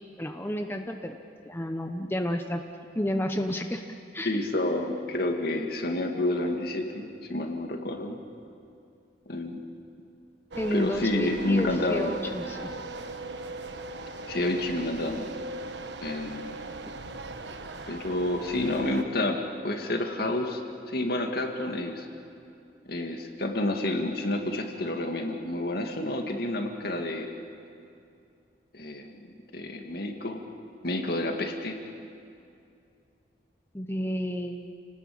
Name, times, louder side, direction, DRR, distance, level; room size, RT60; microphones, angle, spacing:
voice 1, 0.2-1.2 1.5-2.6 2.9-3.8 4.1-4.4 10.5-12.7 33.7-34.7, equal, 15° left, 4 dB, 0.9 m, -31 dB
voice 2, 4.2-8.2 9.3-9.6 10.7-12.1 14.3-15.3 16.0-16.6 17.9-19.4 19.6-20.6 20.9-22.1 22.9-27.3 28.7-30.4 30.8-31.8, left 1 dB, 60° left, 3 dB, 2.3 m, -29 dB
sound 1, 10.5-19.0, right 2 dB, 80° right, 1.3 m, -39 dB
29.5 x 19.0 x 8.8 m, 2.5 s
head